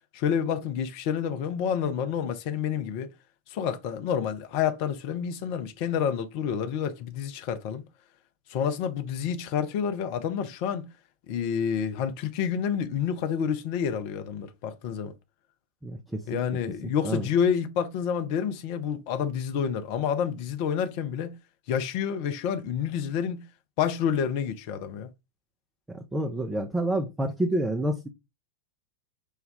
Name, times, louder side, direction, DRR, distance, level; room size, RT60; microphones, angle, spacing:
voice 1, 0.1-3.1 3.5-7.8 8.5-10.9 11.3-15.1 16.3-21.3 21.7-23.4 23.8-25.1, left 8 dB, 45° left, 0.6 m, -28 dB
voice 2, 15.8-16.4 17.0-17.3 26.1-28.1, right 1 dB, 10° right, 0.6 m, -28 dB
5.4 x 2.3 x 3.4 m
figure-of-eight pair, 90°, 0 cm